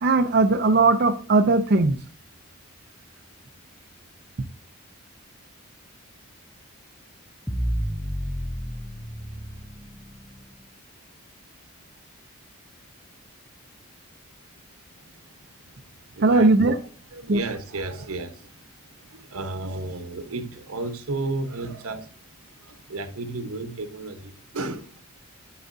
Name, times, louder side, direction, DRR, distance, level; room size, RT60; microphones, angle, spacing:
voice 1, 0.0-2.0 16.2-16.8 17.3-17.4, right 3 dB, 50° right, 0.5 m, -18 dB
sound 1, 7.5-10.6, equal, ahead, 0.4 m, -31 dB
voice 2, 16.1-16.5 17.1-18.6 19.0-22.1 22.6-25.0, right 2 dB, 80° right, 1.1 m, -33 dB
11.5 x 4.8 x 2.7 m
head